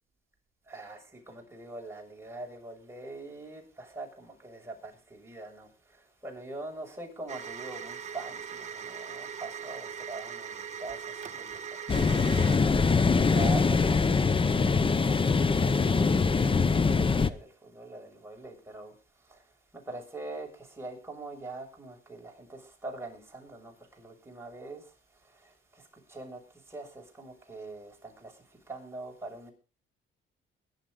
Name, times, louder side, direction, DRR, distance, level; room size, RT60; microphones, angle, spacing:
voice 1, 0.7-12.9 13.3-18.9 19.3-19.4 19.9-24.9 25.3-25.5 26.1-26.4 26.7-29.5, right 3 dB, 10° right, 7.1 m, -43 dB
sound 1, 7.3-12.6, right 7 dB, 35° right, 2.1 m, -40 dB
sound 2, 11.9-17.3, left 4 dB, 25° left, 0.9 m, -23 dB
21.0 x 11.5 x 3.9 m
cardioid pair, 100°, 21 cm